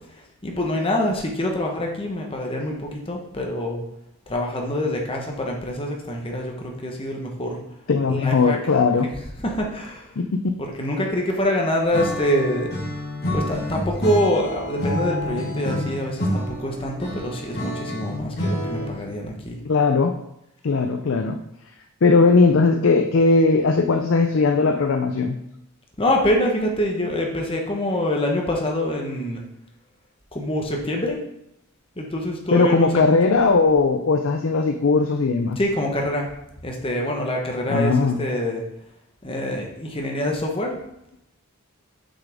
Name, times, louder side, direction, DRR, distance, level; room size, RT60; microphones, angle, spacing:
voice 1, 0.0-3.8 4.3-7.6 8.1-8.6 9.4-10.1 10.6-12.7 13.3-19.6 26.0-29.4 30.3-31.2 32.0-33.2 35.6-36.3 36.6-38.6 39.2-40.8, left 1 dB, 25° left, 1 dB, 1.0 m, -25 dB
voice 2, 7.9-9.1 10.2-10.3 19.6-20.1 20.6-21.4 22.0-25.4 32.5-35.6 37.7-38.2, left 4 dB, 65° left, 6 dB, 0.5 m, -18 dB
Acoustic guitar / Strum, 11.9-19.1, left 1 dB, 45° left, 2.5 m, -28 dB
6.8 x 6.0 x 3.5 m, 0.83 s
head